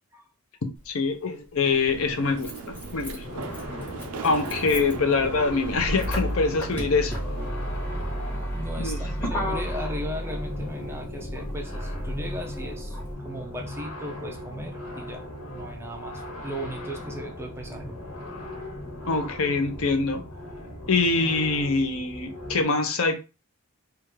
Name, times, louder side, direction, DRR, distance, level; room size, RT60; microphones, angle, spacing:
Motor vehicle (road), 0.8-0.9 2.0-13.1, equal, 10° left, 0.8 m, -33 dB
voice 1, 0.9-3.2 4.2-7.2 8.8-9.0 19.1-20.2 20.9-23.2, left 4 dB, 65° left, 6 dB, 0.6 m, -24 dB
sound 1, 1.6-7.5, right 4 dB, 85° right, 0.5 m, -39 dB
sound 2, 3.2-22.7, left 1 dB, 85° left, 1.5 m, -38 dB
voice 2, 8.5-18.0, equal, 10° right, 3 dB, 0.4 m, -37 dB
3.4 x 2.4 x 3.1 m, 0.29 s
head